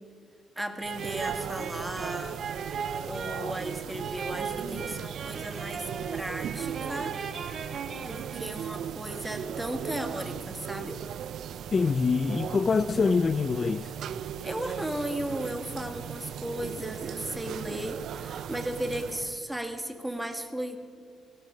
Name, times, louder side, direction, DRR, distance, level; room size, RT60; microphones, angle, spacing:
voice 1, 0.6-2.4 3.1-7.2 8.0-11.0 14.4-20.8, right 1 dB, 5° right, 1.8 m, -35 dB
sound 1, 0.8-8.8, right 5 dB, 50° right, 1.3 m, -38 dB
sound 2, 0.8-19.4, right 9 dB, 70° right, 0.5 m, -38 dB
voice 2, 11.7-13.9, left 4 dB, 35° left, 0.4 m, -25 dB
17.0 x 15.5 x 5.1 m
cardioid pair, 90°, 0 cm